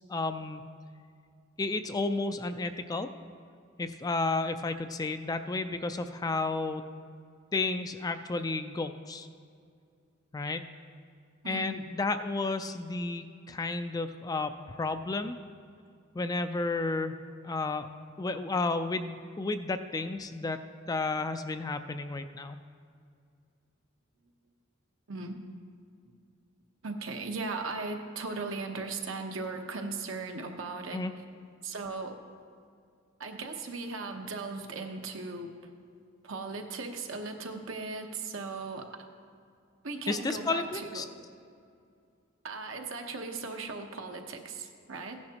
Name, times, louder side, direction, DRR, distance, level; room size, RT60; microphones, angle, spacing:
voice 1, 0.1-0.7 1.6-3.1 3.8-6.8 7.5-9.3 10.3-10.6 11.5-15.4 16.1-17.2 17.4-17.9 18.2-20.6 20.9-22.6 30.9-31.1 40.1-41.0, left 3 dB, 20° left, 9 dB, 0.3 m, -32 dB
voice 2, 11.4-11.8 25.1-25.4 26.8-31.0 31.6-32.1 33.2-35.5 36.2-38.9 39.8-41.1 42.4-45.2, right 3 dB, 75° right, 4 dB, 1.0 m, -37 dB
15.5 x 10.5 x 2.9 m, 2.3 s
head